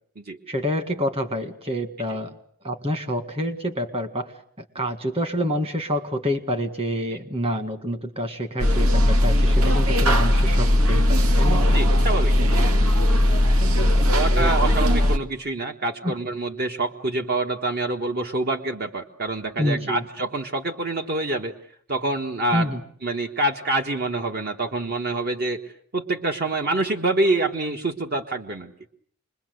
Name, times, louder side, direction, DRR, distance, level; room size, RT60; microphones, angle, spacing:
voice 1, 0.5-2.4 2.6-4.3 4.8-11.8 14.0-14.7 16.0-16.1 19.6-20.0 22.5-22.8, equal, 25° right, 8 dB, 2.0 m, -27 dB
sound 1, 8.6-15.2, left 1 dB, 80° right, 1.9 m, -18 dB
voice 2, 11.7-12.7 14.1-21.5 21.9-22.7 23.0-28.7, right 2 dB, 45° right, 4 dB, 1.4 m, -26 dB
28.5 x 22.0 x 7.9 m, 0.62 s
head